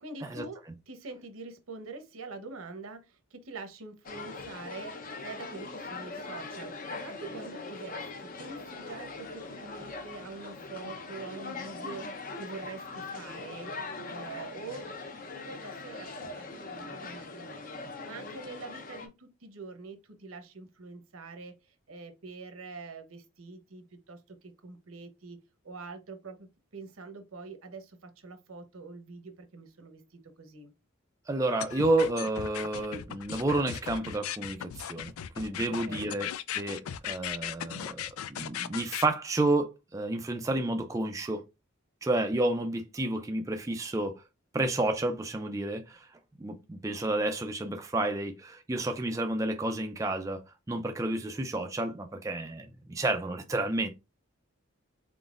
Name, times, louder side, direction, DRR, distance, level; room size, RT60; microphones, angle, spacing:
voice 1, 0.0-4.9 5.2-14.9 15.4-17.8 18.0-26.5 26.7-30.0 30.4-30.7 35.7-36.1, right 3 dB, 80° right, 0.9 m, -45 dB
sound 1, 4.0-19.1, left 3 dB, 40° left, 0.7 m, -41 dB
voice 2, 31.3-36.3 36.5-41.4 42.0-44.2 44.5-46.1 46.4-50.4 50.7-53.9, right 2 dB, 15° right, 0.3 m, -30 dB
sound 2, 31.6-39.1, left 10 dB, 85° left, 0.4 m, -37 dB
3.9 x 3.8 x 2.4 m
head